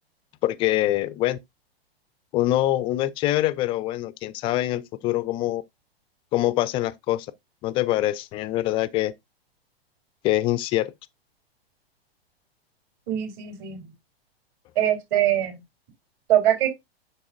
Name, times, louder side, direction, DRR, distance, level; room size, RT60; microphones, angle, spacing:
voice 1, 0.4-1.4 2.3-5.6 6.3-7.3 7.6-9.1 10.2-10.9, left 15 dB, 15° left, 0.4 m, -24 dB
voice 2, 13.1-13.8 14.8-15.5 16.3-16.7, right 11 dB, 40° right, 3.8 m, -22 dB
8.4 x 6.4 x 2.5 m
figure-of-eight pair, 105°, 31 cm